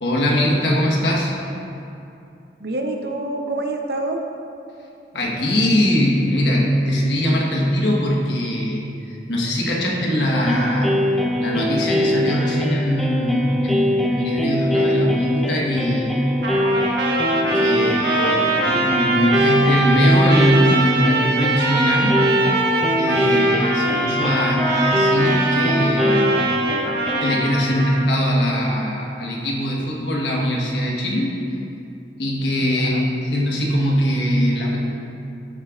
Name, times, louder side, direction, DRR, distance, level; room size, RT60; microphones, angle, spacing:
voice 1, 0.0-1.3 5.1-10.9 11.4-16.1 17.5-22.2 23.0-26.4 27.2-31.3 32.2-34.8, equal, 80° left, -2 dB, 1.3 m, -21 dB
voice 2, 2.6-4.2 18.3-18.6 32.7-33.0, right 2 dB, 60° right, 3 dB, 0.8 m, -27 dB
sound 1, 10.3-27.4, left 1 dB, ahead, 0.5 m, -23 dB
Trumpet, 16.4-28.0, right 2 dB, 80° right, 1.2 m, -22 dB
13.5 x 7.4 x 2.5 m, 2.7 s
head